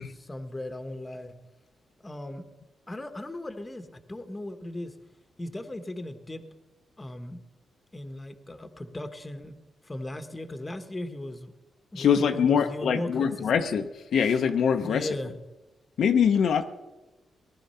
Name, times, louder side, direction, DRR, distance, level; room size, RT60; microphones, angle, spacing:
voice 1, 0.0-1.4 2.0-2.5 2.9-4.9 5.4-6.4 7.0-7.4 7.9-9.5 9.8-11.5 11.9-13.3 14.8-15.3 16.4-16.5, left 1 dB, 15° left, 9 dB, 1.2 m, -37 dB
voice 2, 12.0-15.1 16.0-16.6, left 7 dB, 70° left, 6 dB, 0.9 m, -23 dB
19.0 x 11.5 x 5.7 m, 1.1 s
cardioid pair, 120°, 0 cm